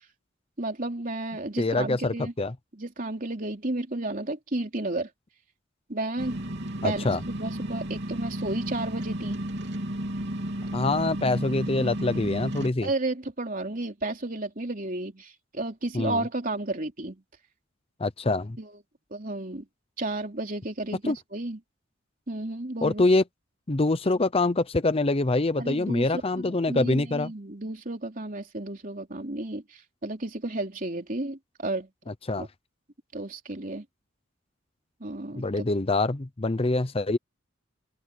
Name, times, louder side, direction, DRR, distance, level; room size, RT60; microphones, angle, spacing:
voice 1, 0.6-2.3 2.7-5.1 5.9-6.4 6.8-9.4 12.8-17.2 18.6-18.7 19.1-19.7 20.0-21.6 22.3-23.0 25.6-31.9 32.4-32.5 33.1-33.9 35.0-35.7, right 2 dB, 40° right, 3.6 m, -32 dB
voice 2, 1.6-2.5 6.8-7.2 10.7-12.9 15.9-16.2 18.0-18.6 21.0-21.2 22.8-23.2 23.7-27.3 32.3-32.5 35.4-37.2, left 2 dB, 30° left, 0.7 m, -25 dB
sound 1, 6.2-12.7, right 1 dB, 60° right, 3.6 m, -33 dB
head